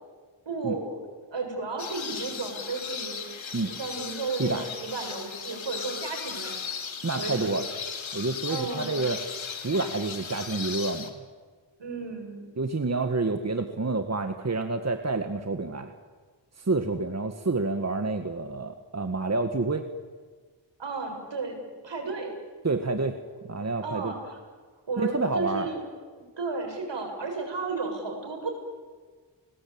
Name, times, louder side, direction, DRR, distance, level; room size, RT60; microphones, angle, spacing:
voice 1, 0.5-1.0 1.3-3.2 3.6-6.7 7.2-7.6 8.5-9.1 11.8-12.4 20.8-22.3 23.8-24.4 24.9-25.8 26.2-28.5, right 3 dB, 65° right, 3 dB, 7.4 m, -33 dB
sound 1, 1.8-11.1, left 6 dB, 80° left, 2.7 m, -37 dB
voice 2, 7.0-7.6 8.1-9.2 9.6-11.2 12.6-15.9 16.6-19.8 22.6-23.2 23.5-24.1 25.0-25.7, right 3 dB, 35° right, 6 dB, 1.8 m, -28 dB
29.5 x 20.0 x 8.8 m, 1.5 s
cardioid pair, 65°, 46 cm